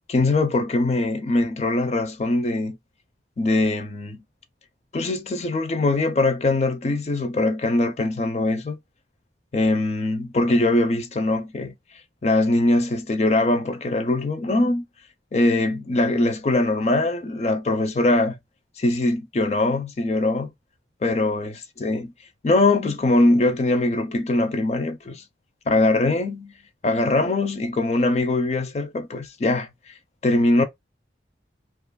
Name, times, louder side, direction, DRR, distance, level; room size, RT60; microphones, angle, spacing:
voice 1, 0.1-2.8 3.4-4.2 4.9-8.8 9.5-11.7 12.2-14.8 15.3-18.4 18.8-20.5 21.0-21.5 21.8-22.1 22.4-25.2 25.7-26.5 26.8-29.9 30.2-30.6, left 2 dB, 35° left, 0.4 m, -22 dB
2.8 x 2.3 x 2.2 m
head